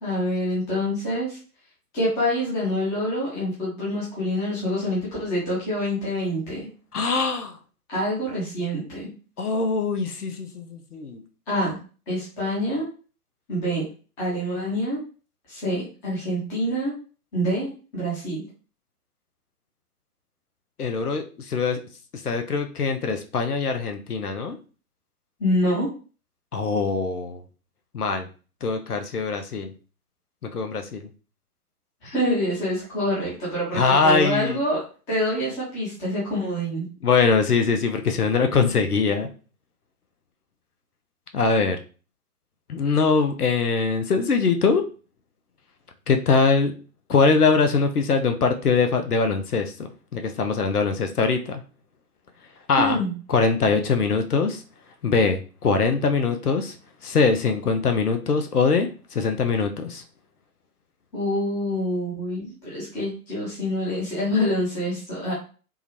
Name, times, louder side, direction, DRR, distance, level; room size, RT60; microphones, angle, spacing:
voice 1, 0.0-1.4 1.9-6.7 7.9-9.1 11.5-11.8 12.1-12.9 13.5-13.8 14.2-15.0 15.5-16.9 17.3-18.4 25.4-25.9 32.0-34.8 35.1-36.9 52.8-53.1 61.1-65.3, equal, 5° left, -8 dB, 0.6 m, -26 dB
voice 2, 6.9-7.6 9.4-11.2 20.8-21.8 22.1-24.6 26.5-27.4 27.9-28.3 28.6-29.7 30.5-31.1 33.7-34.6 37.0-39.3 41.3-41.8 42.7-44.8 46.1-46.7 47.1-51.6 52.7-53.0 53.3-54.6 55.0-56.7 57.0-60.0, left 4 dB, 75° left, 6 dB, 0.6 m, -22 dB
3.5 x 2.2 x 3.0 m, 0.37 s
figure-of-eight pair, 125°, 46 cm